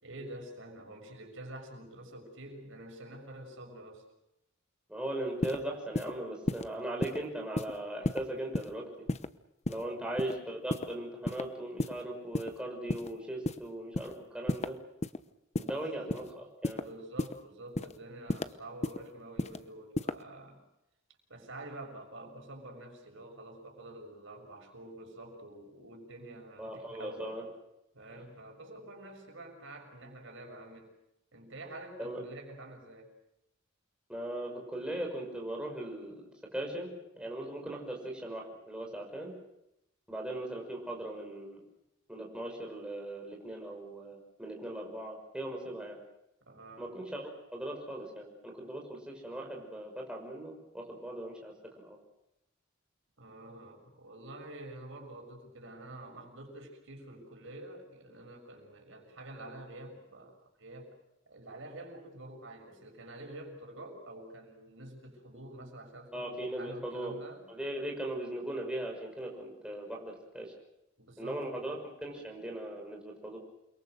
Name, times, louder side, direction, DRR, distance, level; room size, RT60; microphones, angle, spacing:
voice 1, 0.0-4.0 9.8-10.1 15.6-16.2 16.7-20.6 21.3-27.3 27.9-30.9 31.3-33.1 46.4-47.0 53.2-60.9 61.3-67.4 71.0-71.7, right 1 dB, 65° right, 2 dB, 6.5 m, -48 dB
voice 2, 4.9-8.9 9.7-14.8 15.6-16.8 26.6-27.5 32.0-32.2 34.1-36.2 36.5-39.3 40.1-41.6 42.1-46.0 46.8-52.0 66.1-67.1 67.5-70.5 71.2-73.4, right 1 dB, 5° right, -1 dB, 5.9 m, -39 dB
sound 1, 5.4-5.6 5.9-6.1 6.5-6.7 7.0-7.2 7.6-7.7 8.0-8.2 8.5-8.7 9.1-9.3 9.6-9.8 10.2-10.3 10.7-10.9 11.3-11.4 11.8-11.9 12.3-12.5 12.9-13.1 13.5-13.6 13.9-14.1 14.5-14.7 15.0-15.2 15.6-15.7 16.1-16.3 16.6-16.8 17.2-17.3 17.8-17.9 18.3-18.5 18.8-19.0 19.4-19.6 20.0-20.1, left 2 dB, 35° left, 0.9 m, -32 dB
29.0 x 23.0 x 6.6 m, 0.86 s
head